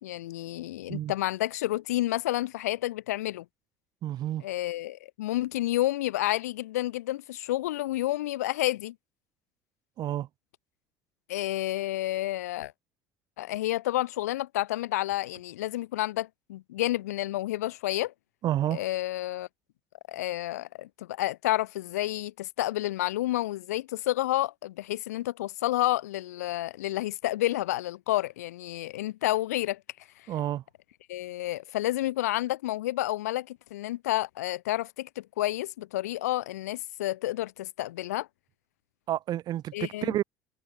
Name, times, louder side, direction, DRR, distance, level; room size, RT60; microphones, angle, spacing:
voice 1, 0.0-3.5 4.4-9.0 11.3-12.7 13.4-18.1 18.7-19.5 20.1-29.8 30.2-30.3 31.1-38.3 39.7-40.2, left 15 dB, 80° left, 3.6 m, -30 dB
voice 2, 4.0-4.4 10.0-10.3 18.4-18.8 30.3-30.6 39.1-40.2, right 12 dB, 55° right, 3.0 m, -29 dB
hypercardioid pair, 65°, 8 cm